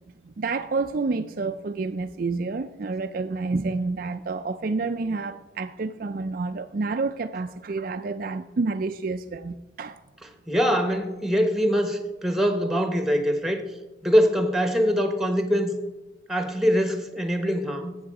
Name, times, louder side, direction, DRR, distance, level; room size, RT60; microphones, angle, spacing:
voice 1, 0.2-10.0, right 3 dB, 45° right, 0.4 m, -29 dB
voice 2, 10.5-13.6 14.0-15.7 16.3-18.0, equal, ahead, 1.2 m, -23 dB
14.0 x 7.9 x 4.8 m
head